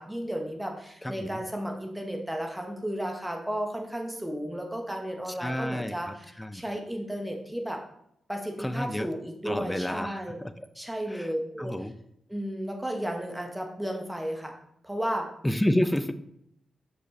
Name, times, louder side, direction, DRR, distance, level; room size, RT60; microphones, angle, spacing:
voice 1, 0.0-7.8 8.3-10.4 10.7-11.8 12.3-14.5 14.8-15.3, equal, 10° right, 2 dB, 1.2 m, -33 dB
voice 2, 1.0-1.4 5.4-6.6 8.6-9.1 9.4-10.7 11.1-11.3 11.6-11.9 15.4-16.1, left 1 dB, 10° left, 11 dB, 0.6 m, -30 dB
6.1 x 5.4 x 3.2 m, 0.74 s
supercardioid pair, 45°, 0 cm